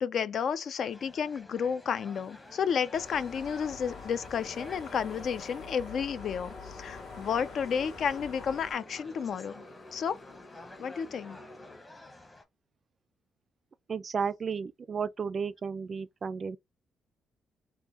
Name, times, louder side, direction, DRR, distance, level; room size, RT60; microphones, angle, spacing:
voice 1, 0.0-9.6 9.9-10.2 10.8-11.4, left 7 dB, 60° left, 0.3 m, -31 dB
sound 1, 0.8-12.4, left 1 dB, 20° left, 0.8 m, -52 dB
Motorcycle, 2.0-11.8, left 2 dB, 40° left, 1.1 m, -52 dB
sound 2, 2.9-8.7, left 4 dB, 80° left, 1.6 m, -45 dB
voice 2, 13.9-16.6, right 6 dB, 45° right, 0.3 m, -33 dB
3.6 x 2.2 x 2.9 m
cardioid pair, 90°, 0 cm